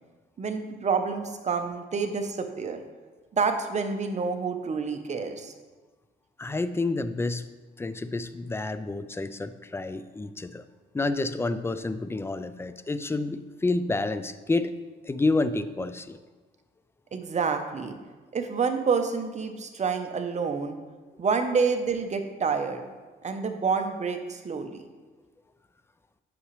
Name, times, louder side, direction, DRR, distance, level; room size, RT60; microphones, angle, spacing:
voice 1, 0.4-2.8 3.3-5.5 17.1-17.9 18.3-20.8 21.2-22.8 23.2-24.8, right 5 dB, 35° right, 6 dB, 0.8 m, -28 dB
voice 2, 6.4-7.5 7.8-10.6 10.9-14.7 15.0-16.2, left 3 dB, 10° left, 13 dB, 0.3 m, -29 dB
8.4 x 6.0 x 3.1 m, 1.3 s
cardioid pair, 90°, 20 cm